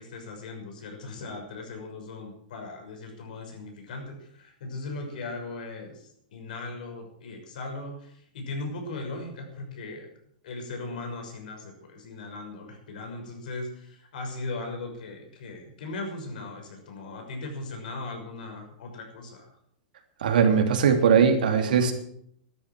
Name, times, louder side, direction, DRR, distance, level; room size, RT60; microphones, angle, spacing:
voice 1, 0.0-10.1 10.4-19.5, left 2 dB, 75° left, 3 dB, 6.2 m, -38 dB
voice 2, 20.2-21.9, right 6 dB, 85° right, 5 dB, 3.0 m, -20 dB
12.5 x 11.0 x 7.6 m, 0.68 s
supercardioid pair, 150°, 5 cm